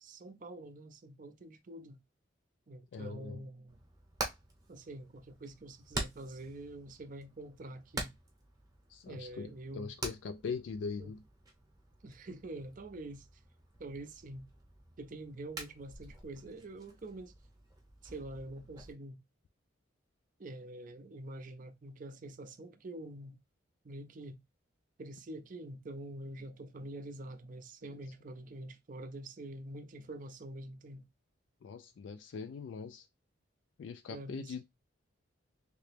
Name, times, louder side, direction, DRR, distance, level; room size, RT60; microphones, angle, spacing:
voice 1, 0.0-2.0 2.7-3.8 4.7-8.1 9.1-9.9 11.0-11.1 12.0-13.3 13.8-14.5 15.0-17.3 18.0-19.2 20.4-23.4 23.8-24.4 25.0-31.1 34.1-34.6, right 1 dB, 40° right, 0.5 m, -46 dB
voice 2, 2.9-3.4 8.9-11.2 31.6-33.1 33.8-34.6, left 5 dB, 65° left, 0.3 m, -41 dB
Hammer, 3.7-18.9, right 2 dB, 20° right, 0.8 m, -47 dB
3.3 x 2.9 x 3.3 m
head